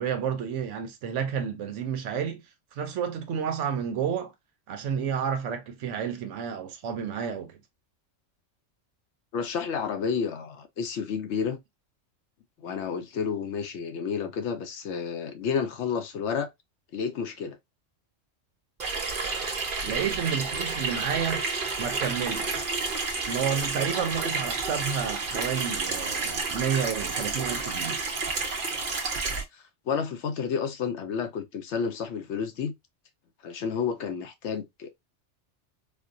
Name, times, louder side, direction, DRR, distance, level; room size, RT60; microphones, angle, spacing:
voice 1, 0.0-2.4 2.7-4.3 4.7-7.5 19.8-21.4 21.8-22.7 23.3-28.0, right 7 dB, 70° right, 1.0 m, -30 dB
voice 2, 9.3-11.6 12.6-16.5 16.9-17.6 29.5-32.7 33.4-35.0, left 6 dB, 70° left, 0.9 m, -31 dB
Water tap faucet / Sink (filling or washing), 18.8-29.4, right 4 dB, 45° right, 0.9 m, -30 dB
4.4 x 2.1 x 2.5 m
omnidirectional pair, 1.3 m